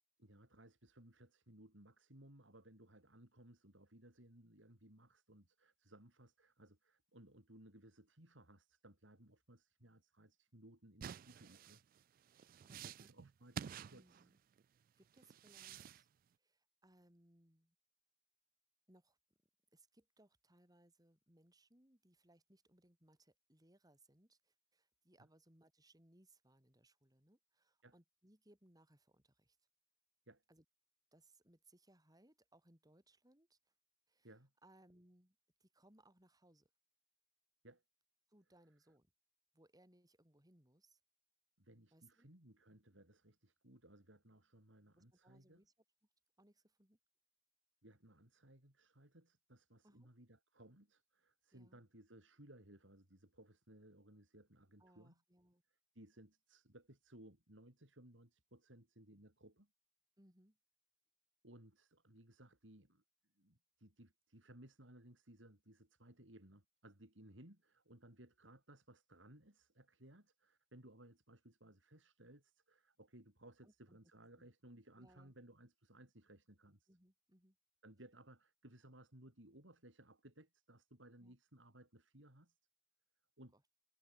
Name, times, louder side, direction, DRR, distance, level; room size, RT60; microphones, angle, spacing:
voice 1, 0.2-11.9 12.7-14.3 25.2-25.3 27.8-28.0 30.3-30.4 34.2-34.5 37.6-37.8 41.6-45.6 47.8-55.2 55.9-59.7 61.4-63.0 63.4-76.9 77.8-82.6 83.4-83.5, right 1 dB, 75° right, 5.5 m, -62 dB
sound 1, 11.0-14.6 15.2-16.0, right 8 dB, 45° right, 0.3 m, -50 dB
voice 2, 12.3-13.1 13.9-14.4 15.0-16.1 16.4-17.8 18.9-19.2 19.7-29.6 30.5-30.6 31.1-33.7 34.1-34.3 34.6-36.7 38.3-39.1 39.5-41.0 41.9-42.3 45.0-45.7 46.4-47.0 49.8-50.1 51.5-51.8 54.8-55.6 60.2-60.6 73.6-74.0 74.4-74.5 75.0-75.3 76.9-77.6 81.2-81.4 83.5-83.6, right 1 dB, 20° right, 7.2 m, -69 dB
head